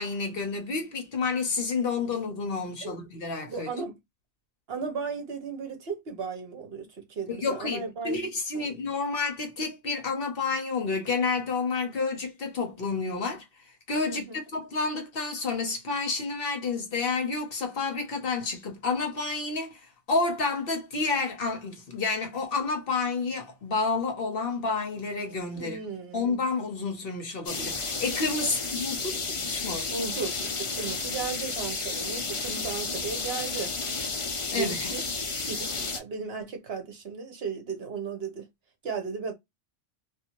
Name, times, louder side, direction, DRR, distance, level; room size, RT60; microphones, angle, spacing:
voice 1, 0.0-3.7 7.3-13.4 13.9-19.8 20.1-25.8 26.1-29.9 34.5-34.9, left 4 dB, 55° left, 0.9 m, -30 dB
voice 2, 3.5-4.0 4.7-8.2 8.5-8.7 14.1-14.4 25.5-26.4 28.4-28.5 29.9-33.7 34.5-35.0 35.5-38.5 38.8-39.3, right 5 dB, 60° right, 1.0 m, -35 dB
sound 1, 27.5-36.0, left 4 dB, 35° left, 0.5 m, -32 dB
2.6 x 2.4 x 2.9 m
omnidirectional pair, 1.2 m